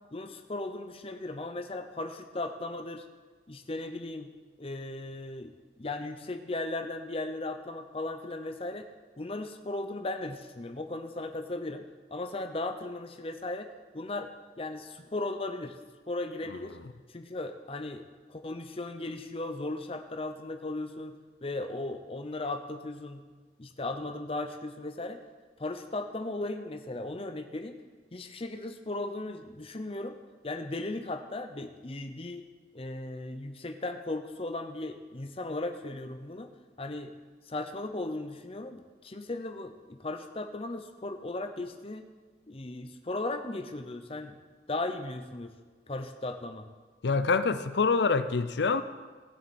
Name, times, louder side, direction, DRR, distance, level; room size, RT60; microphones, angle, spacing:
voice 1, 0.1-3.1 3.5-4.3 4.6-8.9 9.2-11.8 12.1-13.7 13.9-14.3 14.6-15.8 16.1-16.8 17.1-23.2 23.6-25.2 25.6-27.8 28.1-30.2 30.4-32.5 32.7-36.5 36.8-37.1 37.5-42.1 42.5-44.4 44.7-45.5 45.9-46.7, left 2 dB, 30° left, 7 dB, 0.7 m, -36 dB
voice 2, 47.0-48.8, left 4 dB, 75° left, 12 dB, 0.6 m, -25 dB
17.0 x 7.5 x 4.3 m, 1.4 s
head